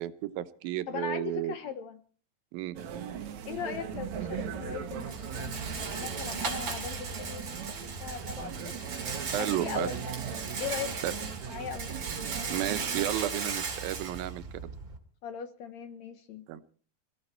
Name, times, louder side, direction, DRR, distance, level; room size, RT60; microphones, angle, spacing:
voice 1, 0.0-1.5 2.5-2.8 9.3-9.9 11.0-11.1 12.5-14.7 16.5-16.6, right 13 dB, 85° right, 12 dB, 2.7 m, -32 dB
voice 2, 0.9-2.0 3.4-8.9 9.4-11.2 11.4-12.1 12.3-12.6 15.2-16.6, left 7 dB, 70° left, 10 dB, 1.8 m, -39 dB
sound 1, 2.8-13.1, right 9 dB, 65° right, 2.3 m, -39 dB
Rattle, 3.9-15.0, right 4 dB, 40° right, 2.5 m, -37 dB
22.0 x 15.0 x 4.4 m, 0.42 s
omnidirectional pair, 4.1 m